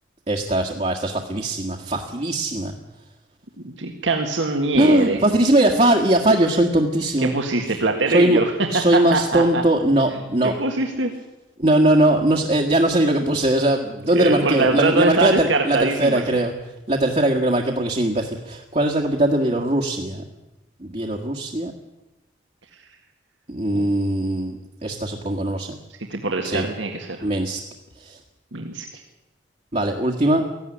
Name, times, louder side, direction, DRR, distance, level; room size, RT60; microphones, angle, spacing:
voice 1, 0.3-2.7 4.7-7.4 7.7-7.8 8.1-8.4 8.7-10.5 11.6-16.5 16.9-20.2 20.8-21.7 23.5-25.7 26.4-26.6 27.2-27.6 28.0-28.2 29.7-30.4, right 1 dB, 35° right, 1 dB, 1.7 m, -20 dB
voice 2, 3.6-5.2 7.2-9.6 10.4-11.1 14.1-16.2 23.7-23.9 26.1-27.3 28.5-29.0, right 3 dB, 75° right, 3 dB, 1.9 m, -23 dB
18.0 x 15.0 x 10.0 m, 1.0 s
head